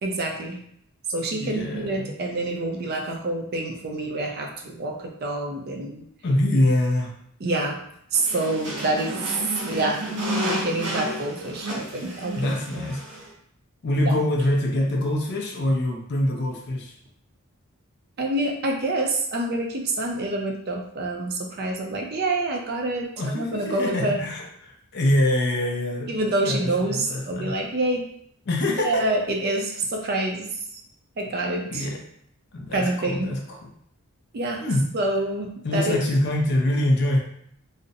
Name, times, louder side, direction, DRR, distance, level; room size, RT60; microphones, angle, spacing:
voice 1, 0.0-0.6 1.1-6.1 7.4-7.8 8.1-9.4 9.6-10.1 10.4-12.8 14.1-14.2 18.2-24.2 26.1-28.1 28.8-30.6 31.2-31.9 32.7-33.3 34.3-34.6 34.9-36.0, right 2 dB, 45° right, 1 dB, 0.4 m, -27 dB
voice 2, 1.3-2.1 6.2-7.1 12.3-13.0 13.8-16.9 23.2-27.6 28.5-29.2 31.7-32.0 32.5-33.7 34.6-34.8 35.6-37.2, left 1 dB, 50° left, 0 dB, 0.4 m, -24 dB
sound 1, 8.1-13.3, right 1 dB, 85° right, 0.9 m, -31 dB
2.5 x 2.0 x 2.6 m, 0.67 s
head